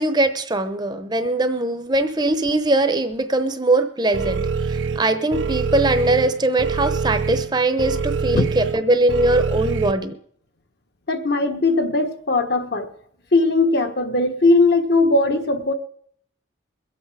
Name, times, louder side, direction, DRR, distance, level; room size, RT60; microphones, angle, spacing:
voice 1, 0.0-10.2, right 2 dB, 20° right, 0.8 m, -21 dB
sound 1, 4.1-9.9, right 5 dB, 75° right, 0.7 m, -25 dB
voice 2, 11.1-12.9 13.3-15.7, left 2 dB, 55° left, 1.3 m, -19 dB
22.5 x 8.3 x 4.9 m
head